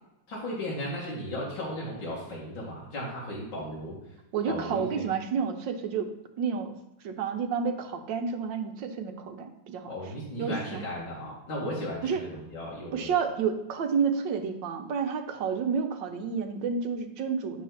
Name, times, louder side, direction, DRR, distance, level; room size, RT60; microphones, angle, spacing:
voice 1, 0.3-4.0 4.5-5.1 9.8-13.1, left 1 dB, 80° left, -6 dB, 2.5 m, -35 dB
voice 2, 4.3-6.8 7.0-9.9 10.4-10.9 12.0-12.2 12.9-17.6, right 6 dB, 75° right, 6 dB, 1.5 m, -30 dB
10.0 x 3.7 x 5.7 m, 0.94 s
omnidirectional pair, 2.1 m